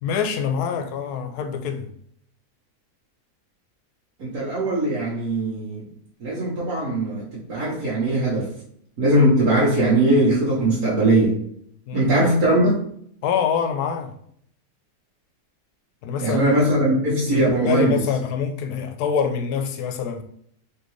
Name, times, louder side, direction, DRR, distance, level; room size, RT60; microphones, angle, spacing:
voice 1, 0.0-1.9 11.9-12.1 13.2-14.1 16.0-16.5 17.3-20.2, left 6 dB, 75° left, 1.1 m, -25 dB
voice 2, 4.2-5.8 6.2-8.5 9.0-11.4 11.9-12.8 16.2-18.0, right 1 dB, 65° right, 1.5 m, -20 dB
4.4 x 2.8 x 3.0 m
omnidirectional pair, 1.7 m